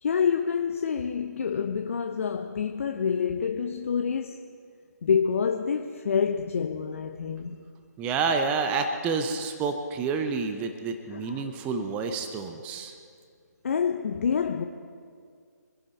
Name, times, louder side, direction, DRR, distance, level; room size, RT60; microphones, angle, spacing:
voice 1, 0.0-4.4 5.0-7.6 11.1-11.5 13.6-14.6, left 6 dB, 45° left, 0.7 m, -27 dB
voice 2, 8.0-12.9, right 4 dB, 15° right, 0.7 m, -29 dB
25.0 x 10.5 x 4.3 m
figure-of-eight pair, 145°, 10 cm